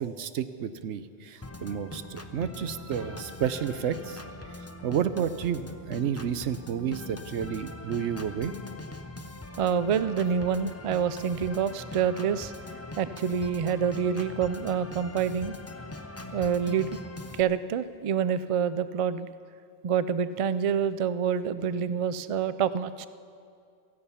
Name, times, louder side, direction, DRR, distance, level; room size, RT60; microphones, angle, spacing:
voice 1, 0.0-4.2 4.8-8.5, right 8 dB, 85° right, 12 dB, 1.0 m, -31 dB
Organ, 1.4-17.4, left 2 dB, 15° left, 0.6 m, -42 dB
voice 2, 9.6-12.5 13.0-15.6 16.3-16.9 17.4-19.3 19.8-23.1, right 7 dB, 55° right, 14 dB, 0.3 m, -27 dB
16.5 x 14.5 x 5.7 m, 2.4 s
omnidirectional pair, 1.2 m